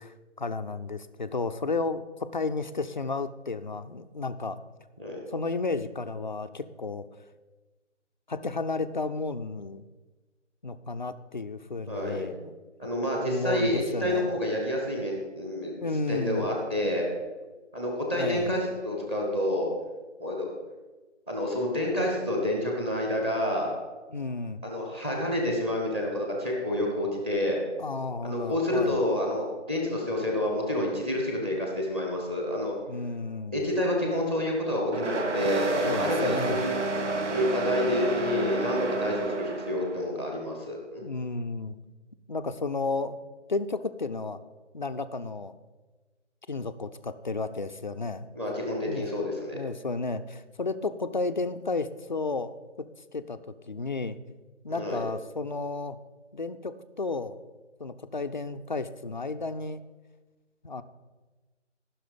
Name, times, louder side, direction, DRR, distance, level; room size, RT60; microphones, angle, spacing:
voice 1, 0.0-4.6 5.3-7.1 8.3-9.8 10.6-12.5 12.8-12.9 13.2-14.3 15.8-16.5 18.1-18.5 24.1-24.6 27.8-29.0 32.9-33.7 35.8-36.6 41.0-41.8 42.3-43.2 43.5-44.4 44.7-45.5 46.5-48.3 48.9-49.1 49.5-52.5 53.1-53.4 53.7-54.2 54.6-56.0 56.3-57.4 57.8-59.8 60.6-60.8, left 3 dB, 40° left, 10 dB, 0.4 m, -32 dB
voice 2, 11.9-12.3 12.8-17.1 17.7-19.7 20.2-20.5 21.3-23.7 24.6-27.6 28.2-32.7 33.5-36.7 37.3-41.0 48.3-49.6 54.7-55.0, left 1 dB, 10° right, -1 dB, 0.9 m, -28 dB
sound 1, 34.9-40.0, right 3 dB, 70° right, 1.5 m, -30 dB
14.5 x 6.1 x 5.0 m, 1.3 s
figure-of-eight pair, 160°, 37 cm